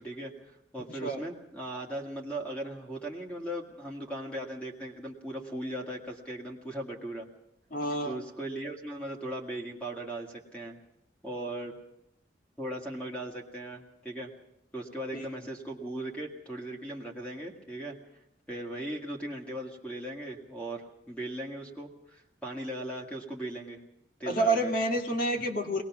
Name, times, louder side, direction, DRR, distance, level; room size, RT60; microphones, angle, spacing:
voice 1, 0.0-7.3 8.0-10.8 11.2-11.7 12.6-14.3 14.7-18.0 18.5-23.8 24.2-24.7, right 1 dB, 5° left, 0 dB, 2.0 m, -38 dB
voice 2, 7.7-8.2 15.1-15.3 24.3-25.8, right 1 dB, 50° left, 3 dB, 1.9 m, -28 dB
22.0 x 19.0 x 6.1 m, 0.83 s
head